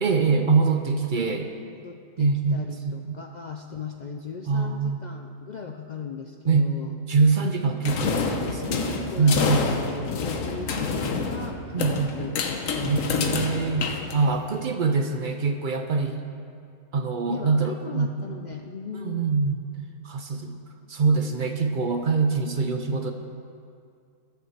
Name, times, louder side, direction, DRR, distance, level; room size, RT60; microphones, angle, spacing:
voice 1, 0.0-1.5 2.2-3.2 4.5-5.0 6.5-6.7 7.1-9.6 11.7-12.2 12.8-16.2 16.9-18.1 19.0-19.6 20.0-20.6 20.9-23.1, right 4 dB, 55° right, 6 dB, 0.6 m, -24 dB
voice 2, 1.7-7.0 8.7-13.9 17.3-19.3, left 6 dB, 60° left, 4 dB, 0.4 m, -38 dB
sound 1, 7.8-14.6, left 4 dB, 85° left, 1.2 m, -28 dB
12.5 x 5.7 x 7.3 m, 2.3 s
omnidirectional pair, 1.3 m